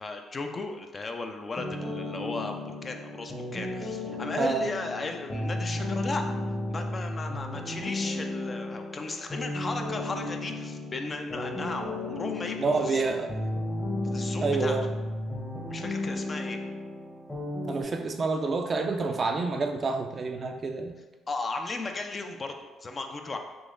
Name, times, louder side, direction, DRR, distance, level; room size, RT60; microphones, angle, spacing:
voice 1, 0.0-6.2 6.7-13.2 14.1-14.8 15.7-16.6 21.3-23.4, left 3 dB, 40° left, 4 dB, 0.4 m, -35 dB
sound 1, 1.5-17.8, left 1 dB, 20° left, 0.9 m, -34 dB
voice 2, 12.6-13.3 14.4-14.9 17.7-20.9, right 3 dB, 45° right, 5 dB, 0.4 m, -28 dB
3.8 x 2.9 x 2.5 m, 1.2 s
hypercardioid pair, 50°, 0 cm